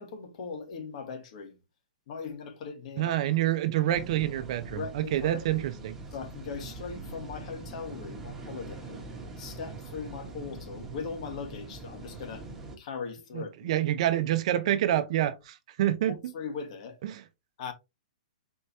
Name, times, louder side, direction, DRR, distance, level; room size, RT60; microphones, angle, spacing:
voice 1, 0.0-1.6 2.1-3.4 4.7-5.6 6.1-9.0 9.4-12.5 12.8-13.7 16.1-17.0 17.6-17.7, left 5 dB, 55° left, 1.3 m, -39 dB
voice 2, 3.0-6.0 13.3-16.1 17.0-17.2, right 12 dB, 50° right, 0.6 m, -27 dB
sound 1, 3.9-12.8, right 3 dB, 10° right, 1.1 m, -43 dB
4.3 x 3.3 x 2.7 m
hypercardioid pair, 145°, 4 cm